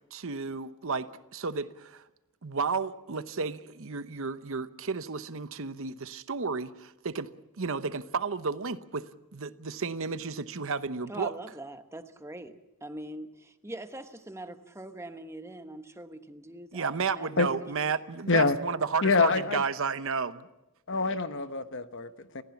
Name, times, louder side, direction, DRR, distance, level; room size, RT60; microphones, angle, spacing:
voice 1, 0.1-2.0 2.4-7.3 7.6-11.3 16.7-20.5, right 5 dB, 65° right, 13 dB, 0.9 m, -32 dB
voice 2, 11.1-17.7, right 1 dB, 10° right, 8 dB, 1.1 m, -43 dB
voice 3, 19.0-19.6 20.9-22.4, left 4 dB, 60° left, 10 dB, 1.1 m, -26 dB
29.5 x 15.5 x 7.2 m, 0.96 s
head